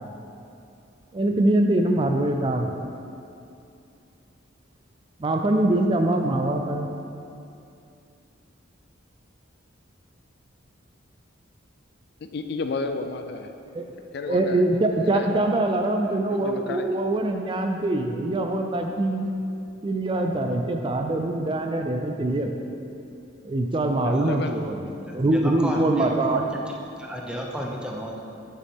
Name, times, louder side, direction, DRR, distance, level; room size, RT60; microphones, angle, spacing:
voice 1, 1.1-2.7 5.2-6.9 13.7-13.9 14.3-19.3 19.8-22.5 23.4-24.8 25.1-26.4, right 1 dB, 25° right, 4 dB, 0.4 m, -23 dB
voice 2, 12.2-13.5 14.1-14.6 15.0-15.3 16.0-16.9 24.0-24.5, left 3 dB, 55° left, 7 dB, 0.4 m, -32 dB
voice 3, 25.1-26.4 27.0-28.2, equal, 5° right, -1 dB, 0.7 m, -33 dB
9.1 x 6.7 x 3.6 m, 2.6 s
head